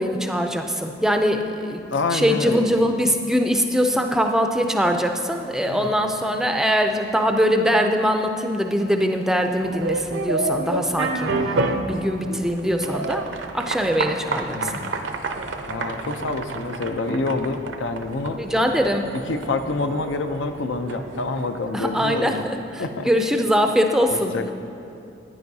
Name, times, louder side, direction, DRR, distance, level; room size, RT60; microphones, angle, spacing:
voice 1, 0.0-1.8 2.1-11.3 11.9-13.2 13.5-14.7 18.4-19.1 21.7-22.6 23.0-24.3, equal, 5° right, 4 dB, 0.4 m, -22 dB
voice 2, 1.9-2.8 5.7-6.1 11.6-11.9 14.5-14.9 15.7-18.4 19.3-22.5 22.8-23.1 24.1-24.5, left 3 dB, 85° left, 7 dB, 0.6 m, -27 dB
sound 1, 9.6-22.3, right 3 dB, 75° right, 0.6 m, -30 dB
14.0 x 9.6 x 2.7 m, 2.8 s
head